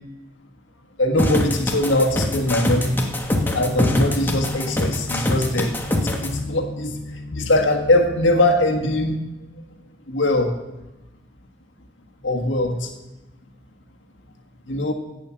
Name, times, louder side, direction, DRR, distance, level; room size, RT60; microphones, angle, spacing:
voice 1, 1.0-3.1 3.5-9.2 10.1-10.6 12.2-12.9 14.7-14.9, left 1 dB, 80° left, 4 dB, 1.6 m, -21 dB
sound 1, 1.2-6.3, left 1 dB, 10° left, 1.3 m, -23 dB
sound 2, 2.1-9.0, left 2 dB, 50° left, 0.7 m, -34 dB
16.0 x 5.5 x 7.1 m, 1.0 s
head